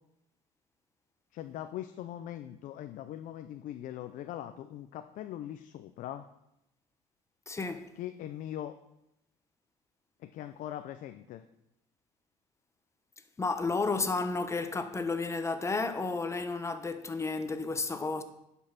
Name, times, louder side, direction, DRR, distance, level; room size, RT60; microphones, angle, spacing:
voice 1, 1.3-6.2 8.0-8.8 10.2-11.4, left 12 dB, 70° left, 0.6 m, -41 dB
voice 2, 7.5-7.9 13.4-18.2, left 3 dB, 20° left, 0.9 m, -32 dB
11.0 x 5.5 x 5.9 m
cardioid pair, 110°, 14 cm